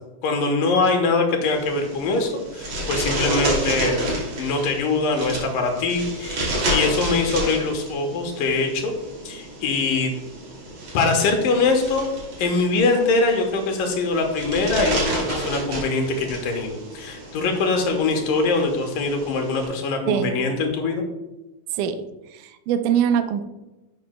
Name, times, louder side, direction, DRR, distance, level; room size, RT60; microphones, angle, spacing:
voice 1, 0.2-8.9 9.3-10.1 10.9-12.1 12.4-21.0, left 3 dB, 80° left, 3 dB, 2.6 m, -23 dB
sound 1, 1.4-19.6, right 1 dB, 55° right, 3.7 m, -30 dB
voice 2, 22.3-23.4, right 8 dB, 80° right, 8 dB, 2.0 m, -22 dB
11.0 x 7.6 x 2.2 m, 1.0 s
omnidirectional pair, 3.9 m